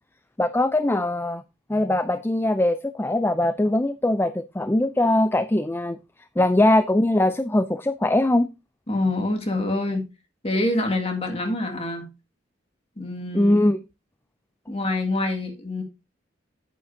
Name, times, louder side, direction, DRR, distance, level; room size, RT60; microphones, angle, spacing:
voice 1, 0.4-1.4 1.7-6.0 6.4-8.5 13.3-13.8, left 1 dB, 10° left, 0.4 m, -21 dB
voice 2, 8.9-10.0 10.4-12.1 13.0-13.5 14.7-15.8, left 2 dB, 30° left, 2.0 m, -26 dB
9.4 x 8.4 x 2.7 m
head